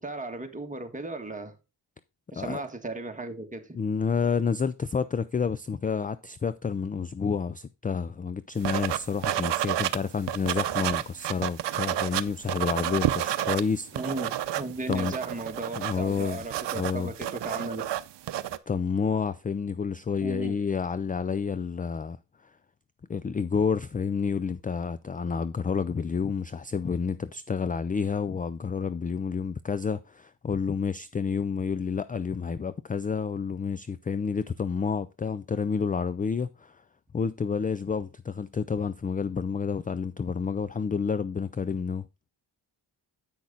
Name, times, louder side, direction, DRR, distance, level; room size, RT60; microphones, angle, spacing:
voice 1, 0.0-1.5 2.3-3.8 13.9-17.8 20.2-20.6, right 2 dB, 20° right, 1.6 m, -36 dB
voice 2, 3.7-13.9 14.9-15.1 15.8-16.4 16.8-17.1 18.7-22.2 23.1-36.8 37.1-42.0, left 5 dB, 20° left, 0.3 m, -29 dB
sound 1, 8.6-10.0 10.3-13.6 13.9-18.6, right 12 dB, 80° right, 0.7 m, -30 dB
8.6 x 6.2 x 3.9 m
cardioid pair, 90°, 42 cm